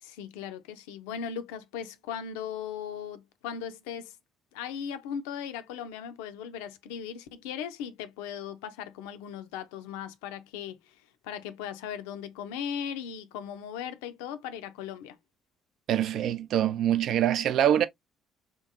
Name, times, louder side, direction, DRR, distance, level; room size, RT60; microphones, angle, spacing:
voice 1, 0.0-4.2 4.5-15.2, left 8 dB, 70° left, 0.4 m, -38 dB
voice 2, 15.9-17.9, right 10 dB, 55° right, 0.4 m, -24 dB
3.6 x 2.5 x 2.6 m
figure-of-eight pair, 50°, 0 cm